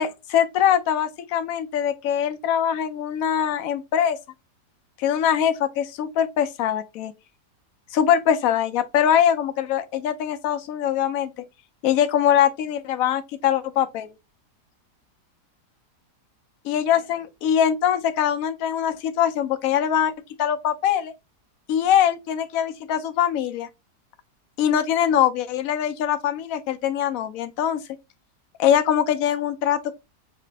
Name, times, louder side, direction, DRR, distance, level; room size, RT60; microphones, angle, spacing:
voice 1, 0.0-4.2 5.0-7.1 7.9-11.3 11.8-14.1 16.7-20.1 20.4-21.1 21.7-23.7 24.6-27.8 28.6-29.9, left 9 dB, 70° left, 0.9 m, -22 dB
4.1 x 2.8 x 3.3 m
omnidirectional pair, 1.7 m